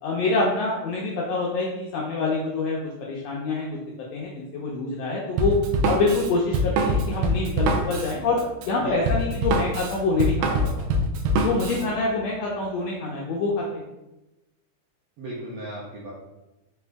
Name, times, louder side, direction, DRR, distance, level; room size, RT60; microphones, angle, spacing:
voice 1, 0.0-3.8 4.1-5.5 5.9-10.7 11.4-13.8, left 3 dB, 80° left, -3 dB, 1.5 m, -26 dB
Drum kit, 5.4-11.8, right 1 dB, 85° right, 1.4 m, -24 dB
voice 2, 8.8-9.2 15.2-16.1, right 1 dB, 70° right, -5 dB, 1.5 m, -35 dB
5.4 x 2.5 x 3.4 m, 0.99 s
omnidirectional pair, 3.6 m